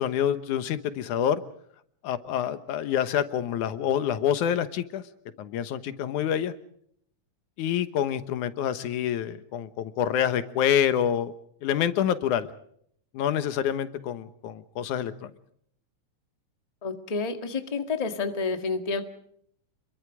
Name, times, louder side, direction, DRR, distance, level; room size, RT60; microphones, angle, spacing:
voice 1, 0.0-1.4 2.0-5.0 5.4-6.5 7.6-11.3 11.6-12.5 13.1-15.3, left 9 dB, 85° left, 12 dB, 2.6 m, -27 dB
voice 2, 16.8-19.0, left 4 dB, 15° left, 7 dB, 1.3 m, -29 dB
29.5 x 22.5 x 4.9 m, 0.67 s
omnidirectional pair, 3.4 m